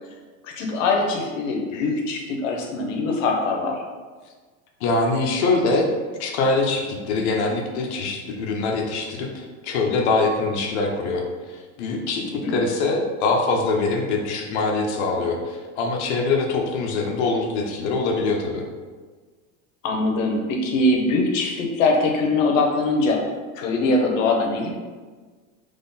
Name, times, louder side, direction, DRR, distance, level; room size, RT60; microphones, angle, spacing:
voice 1, 0.4-3.8 12.2-12.6 19.8-23.2 23.5-24.8, left 2 dB, 90° left, 2 dB, 1.1 m, -22 dB
voice 2, 4.8-5.9 6.2-18.6, left 3 dB, 60° left, 1 dB, 0.9 m, -23 dB
3.7 x 3.4 x 4.0 m, 1.4 s
supercardioid pair, 170°, 38 cm